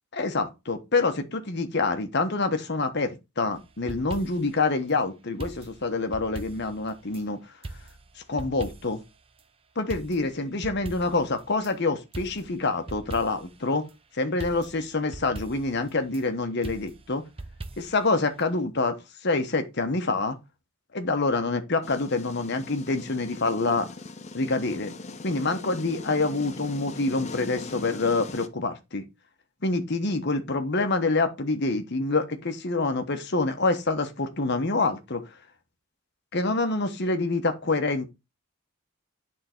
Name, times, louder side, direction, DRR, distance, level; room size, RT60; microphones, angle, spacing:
voice 1, 0.1-7.4 8.3-9.0 9.8-13.8 14.2-17.2 17.8-19.0 19.2-20.4 20.9-23.9 24.3-24.9 25.2-29.0 29.6-35.2 36.3-38.1, left 3 dB, 55° left, 1.1 m, -26 dB
sound 1, 3.6-4.6 5.4-7.2 7.6-9.1 9.4-9.5 9.9-11.7 12.1-13.6 13.9-14.0 14.4-16.2 16.6-18.1 18.4-18.5, right 2 dB, 25° right, 0.6 m, -41 dB
sound 2, 21.8-28.5, left 3 dB, 30° left, 0.6 m, -40 dB
9.2 x 3.7 x 4.4 m
head